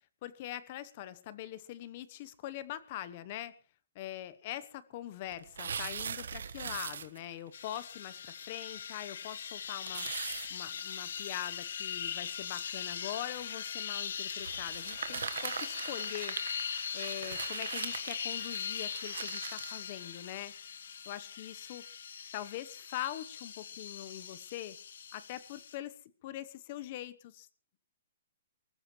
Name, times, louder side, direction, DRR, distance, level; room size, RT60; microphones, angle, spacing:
voice 1, 0.2-3.5 3.9-16.4 16.9-20.5 21.1-21.9 22.3-24.8 25.1-26.0 26.2-27.5, left 13 dB, 30° left, 15 dB, 1.0 m, -43 dB
sound 1, 5.3-7.4 7.7-7.8 8.3-8.4 8.7-8.8 9.9-11.5 12.1-12.2 13.1-13.4 14.4-19.8, right 6 dB, 80° right, 1.4 m, -41 dB
sound 2, 7.5-25.8, left 7 dB, 65° left, 1.3 m, -40 dB
24.5 x 14.5 x 3.2 m, 0.38 s
hypercardioid pair, 170°, 0 cm